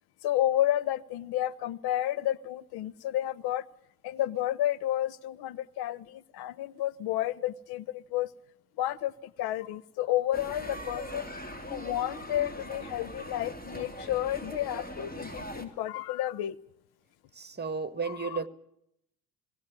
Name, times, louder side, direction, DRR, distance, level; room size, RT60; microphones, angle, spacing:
voice 1, 0.2-3.7 4.0-8.3 8.8-11.3 11.7-16.6 18.0-18.4, left 13 dB, 60° left, 1.0 m, -31 dB
sound 1, 10.3-15.7, equal, 20° left, 3.7 m, -41 dB
voice 2, 17.3-18.5, right 5 dB, 25° right, 1.7 m, -33 dB
19.0 x 18.0 x 9.7 m
hypercardioid pair, 60°, 42 cm